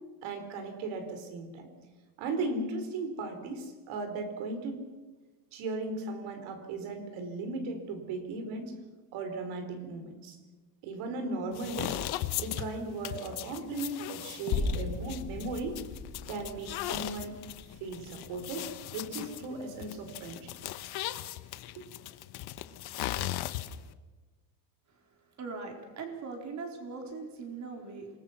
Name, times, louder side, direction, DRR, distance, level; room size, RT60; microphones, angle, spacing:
voice 1, 0.2-1.7 2.2-4.8 5.5-8.7 9.1-10.4 10.8-12.0 12.4-15.8 16.3-17.3 17.8-20.5 21.8-21.9, right 3 dB, 80° right, 7 dB, 4.6 m, -37 dB
sound 1, 11.5-23.9, left 14 dB, 55° left, 1.1 m, -38 dB
sound 2, 14.5-18.7, left 5 dB, 80° left, 5.4 m, -37 dB
voice 2, 24.9-28.1, right 4 dB, 35° right, 3 dB, 4.4 m, -41 dB
27.5 x 20.0 x 6.0 m, 1.3 s
cardioid pair, 165°, 47 cm